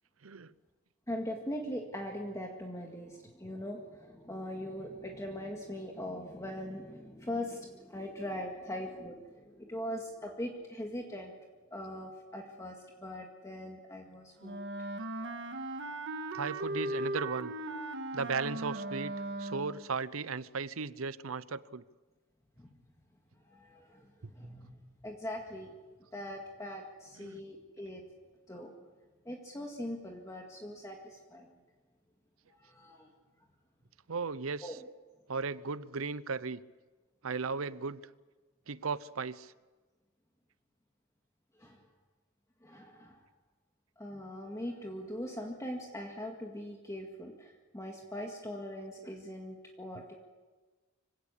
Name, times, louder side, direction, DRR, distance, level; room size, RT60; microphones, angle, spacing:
voice 1, 0.2-0.5 16.3-17.5 18.1-21.8 24.2-24.3 27.2-27.4 34.1-34.8 35.3-36.6 37.2-38.1 38.7-39.5, right 4 dB, 85° right, 0.8 m, -36 dB
voice 2, 1.1-11.3 11.7-14.6 22.6-22.7 23.4-25.7 26.1-28.0 28.5-28.8 29.3-31.6 32.5-33.1 34.6-34.8 41.6-41.8 42.6-43.2 44.0-50.1, left 1 dB, 15° left, 2.0 m, -41 dB
Wind instrument woodwind instrument, 14.4-19.9, right 2 dB, 60° right, 1.7 m, -38 dB
25.0 x 17.0 x 8.4 m
head